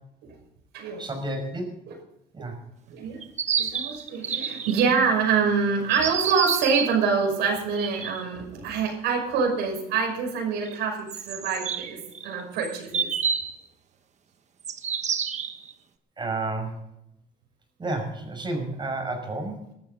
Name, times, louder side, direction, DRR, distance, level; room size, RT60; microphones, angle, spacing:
voice 1, 1.0-1.7 2.3-2.6 16.2-16.8 17.8-19.7, right 2 dB, 25° right, 4 dB, 5.8 m, -31 dB
voice 2, 2.9-3.2 3.6-13.1, right 5 dB, 85° right, 2 dB, 5.8 m, -26 dB
sound 1, 3.2-4.9 5.9-7.0 7.6-8.2 10.7-10.8 11.1-13.5 14.6-15.7, right 7 dB, 45° right, 1.4 m, -29 dB
20.5 x 14.0 x 4.0 m, 0.80 s
cardioid pair, 110°, 17 cm